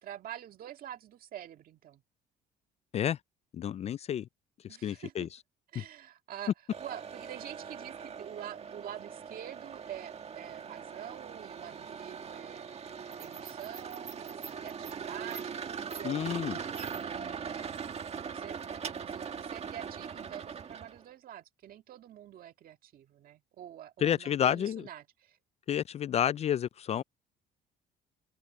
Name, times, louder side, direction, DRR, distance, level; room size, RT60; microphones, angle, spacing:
voice 1, 0.0-2.0 4.7-5.3 5.7-6.5 6.8-12.7 13.2-15.6 15.9-16.6 17.0-25.4, right 11 dB, 60° right, 2.0 m, -46 dB
voice 2, 3.5-4.3 4.8-5.3 5.8-5.9 16.0-16.6 24.0-24.9 25.7-27.0, left 9 dB, 40° left, 0.4 m, -30 dB
sound 1, 6.7-21.0, right 6 dB, 40° right, 1.8 m, -41 dB
cardioid pair, 110°, 17 cm